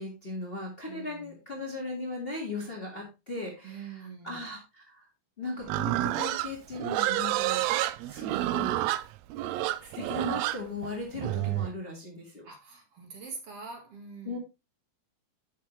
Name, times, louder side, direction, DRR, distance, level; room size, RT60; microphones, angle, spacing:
voice 1, 0.0-5.1 5.4-8.8 9.8-12.5 14.2-14.4, left 2 dB, 20° left, -1 dB, 1.8 m, -38 dB
voice 2, 0.9-1.3 3.6-4.4 12.4-14.4, right 5 dB, 50° right, 2 dB, 2.7 m, -44 dB
Livestock farm animals working animals, 5.7-11.7, right 15 dB, 80° right, 1.6 m, -29 dB
10.0 x 6.7 x 3.1 m, 0.27 s
omnidirectional pair, 3.6 m